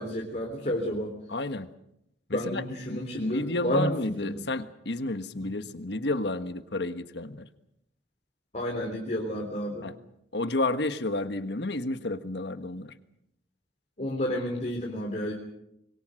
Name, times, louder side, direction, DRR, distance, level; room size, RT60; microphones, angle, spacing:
voice 1, 0.0-1.1 2.3-3.9 4.2-4.3 5.3-5.5 8.5-9.9 14.0-15.3, equal, 40° left, -1 dB, 3.6 m, -31 dB
voice 2, 1.3-1.7 2.3-7.4 9.8-9.9 10.3-12.9, left 2 dB, 70° left, 10 dB, 1.4 m, -31 dB
26.0 x 22.5 x 6.4 m, 0.81 s
head